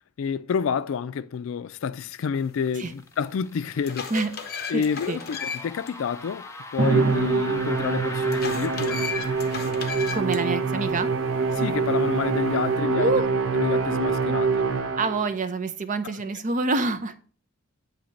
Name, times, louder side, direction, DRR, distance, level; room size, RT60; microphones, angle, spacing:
voice 1, 0.2-4.1 4.7-6.5 6.7-9.1 11.5-13.1 13.5-14.5 16.0-16.1, left 6 dB, 70° left, 0.3 m, -29 dB
sound 1, 2.3-10.1, left 2 dB, 15° left, 0.5 m, -40 dB
sound 2, 2.9-3.0 3.5-5.9 6.3-6.4 8.3-10.4, left 6 dB, 50° left, 0.8 m, -34 dB
voice 2, 4.7-5.2 10.1-11.1 12.9-13.3 15.0-17.1, right 3 dB, 40° right, 0.6 m, -26 dB
Musical instrument, 6.8-15.3, right 4 dB, 75° right, 0.7 m, -25 dB
8.6 x 2.9 x 5.1 m
head